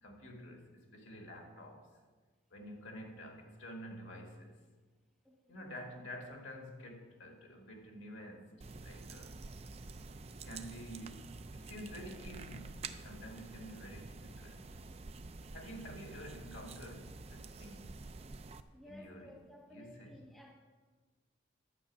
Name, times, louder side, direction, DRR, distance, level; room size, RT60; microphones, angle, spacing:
voice 1, 0.0-1.9 2.5-4.6 5.5-9.4 10.3-14.6 15.5-17.9 18.8-19.4 19.7-20.2, equal, 90° left, 2 dB, 2.0 m, -49 dB
voice 2, 5.2-5.7 18.7-20.5, left 1 dB, ahead, -1 dB, 1.3 m, -56 dB
sound 1, 8.6-18.6, right 3 dB, 30° right, 0.4 m, -48 dB
11.5 x 6.2 x 7.3 m, 1.4 s
head